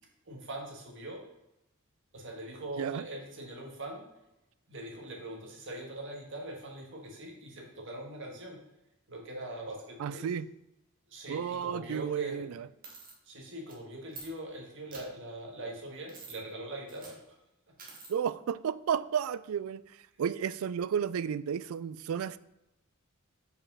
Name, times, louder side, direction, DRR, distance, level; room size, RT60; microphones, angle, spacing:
voice 1, 0.3-1.2 2.1-4.0 4.7-8.6 9.1-10.3 11.1-12.5 13.3-17.2, right 1 dB, 60° right, 0 dB, 1.7 m, -42 dB
voice 2, 10.0-10.5 11.3-12.7 18.1-19.8 20.2-22.4, right 8 dB, 80° right, 18 dB, 0.3 m, -32 dB
sound 1, 12.8-13.1 13.7-13.8 14.1-14.3 14.9-15.0 16.1-16.4 16.9-17.2 17.8-18.1, right 4 dB, 45° right, 1.6 m, -47 dB
5.3 x 4.9 x 5.5 m, 0.90 s
head